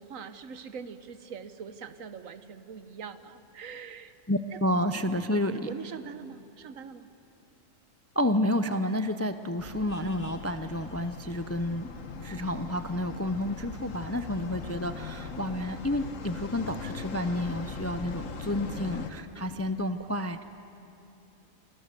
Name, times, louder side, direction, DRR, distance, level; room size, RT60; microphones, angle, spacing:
voice 1, 0.0-4.1 4.5-4.6 5.0-5.1 5.7-7.1, right 6 dB, 80° right, 11 dB, 1.4 m, -43 dB
voice 2, 4.3-5.7 8.2-11.9 12.2-20.4, left 1 dB, 20° left, 10 dB, 0.4 m, -30 dB
sound 1, 9.6-19.1, left 4 dB, 70° left, 1.7 m, -40 dB
28.0 x 25.0 x 6.9 m, 2.9 s
omnidirectional pair, 1.4 m